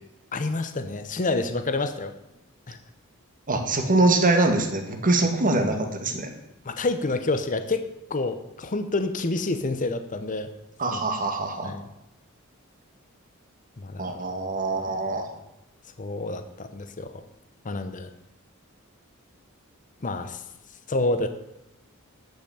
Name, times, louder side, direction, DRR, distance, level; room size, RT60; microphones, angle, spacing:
voice 1, 0.3-2.1 2.7-2.8 6.6-10.5 10.9-11.0 11.6-11.9 13.8-14.2 16.0-17.2 17.6-18.1 20.0-20.4 20.9-21.3, left 2 dB, 40° left, 9 dB, 0.8 m, -28 dB
voice 2, 3.5-6.3 10.8-11.7 14.0-15.3, right 2 dB, 40° right, 4 dB, 1.8 m, -23 dB
12.0 x 5.9 x 8.6 m, 0.88 s
head